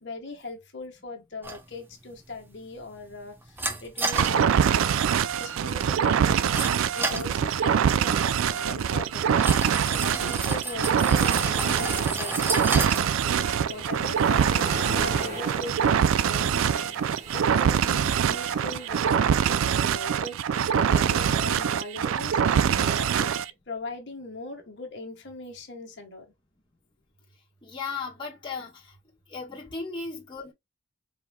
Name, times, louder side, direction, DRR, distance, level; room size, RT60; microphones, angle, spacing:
voice 1, 0.0-9.4 9.8-12.7 12.9-20.4 20.7-23.3 23.7-26.3, left 2 dB, 60° left, 1.3 m, -40 dB
sound 1, 1.4-14.7, right 2 dB, 10° right, 0.5 m, -35 dB
sound 2, 4.1-23.5, right 8 dB, 80° right, 0.3 m, -24 dB
sound 3, 10.5-19.6, right 1 dB, 35° right, 1.4 m, -40 dB
voice 2, 27.6-28.8 29.3-30.5, left 4 dB, 25° left, 1.3 m, -36 dB
4.7 x 3.7 x 2.2 m
head